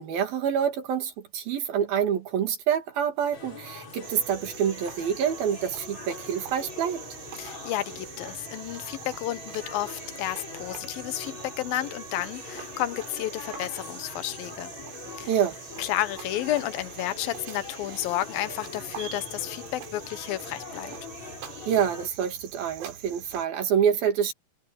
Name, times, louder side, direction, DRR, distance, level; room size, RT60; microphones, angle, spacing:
voice 1, 0.0-7.0 15.3-15.6 21.7-24.3, right 8 dB, 55° right, 3.5 m, -27 dB
sound 1, 3.3-22.1, left 3 dB, 35° left, 7.3 m, -42 dB
Cricket, 4.0-23.5, right 10 dB, 80° right, 4.8 m, -44 dB
voice 2, 7.4-14.7 15.2-15.4 15.8-20.9, left 14 dB, 80° left, 2.1 m, -31 dB
omnidirectional pair, 5.6 m